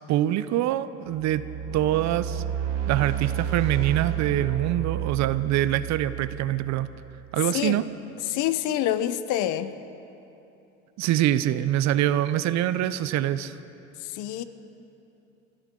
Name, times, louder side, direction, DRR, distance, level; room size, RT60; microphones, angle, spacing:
voice 1, 0.1-1.4 1.7-2.4 2.9-6.9 7.3-7.8 11.0-13.6, right 13 dB, 50° right, 14 dB, 0.6 m, -24 dB
sound 1, 1.1-7.3, right 10 dB, 85° right, 1.7 m, -31 dB
voice 2, 8.3-9.7 14.0-14.4, left 12 dB, 55° left, 13 dB, 0.8 m, -27 dB
24.5 x 13.0 x 3.8 m, 2.9 s
hypercardioid pair, 85°, 35 cm